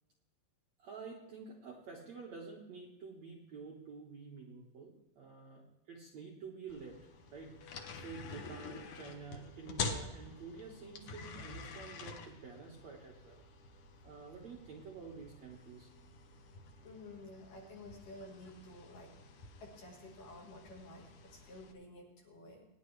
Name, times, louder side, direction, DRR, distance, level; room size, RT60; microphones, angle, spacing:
voice 1, 0.8-13.4 14.0-15.9, right 5 dB, 60° right, -2 dB, 1.8 m, -49 dB
sound 1, 6.7-21.7, left 4 dB, 85° left, 1.6 m, -47 dB
voice 2, 16.8-19.1 19.6-22.7, left 2 dB, 55° left, 0 dB, 2.9 m, -52 dB
23.5 x 10.5 x 3.3 m, 1.0 s
omnidirectional pair, 5.2 m